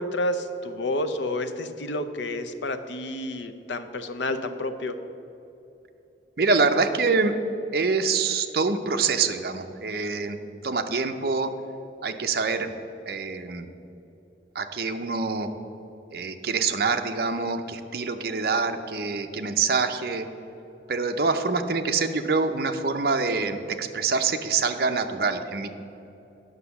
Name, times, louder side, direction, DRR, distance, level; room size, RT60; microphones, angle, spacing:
voice 1, 0.0-4.9, left 1 dB, 80° left, 9 dB, 0.7 m, -30 dB
voice 2, 6.4-7.3 7.7-11.5 12.0-12.7 13.1-13.7 14.5-15.5 16.1-20.3 20.9-25.7, right 4 dB, 55° right, 6 dB, 0.6 m, -25 dB
9.8 x 6.1 x 6.9 m, 2.9 s
head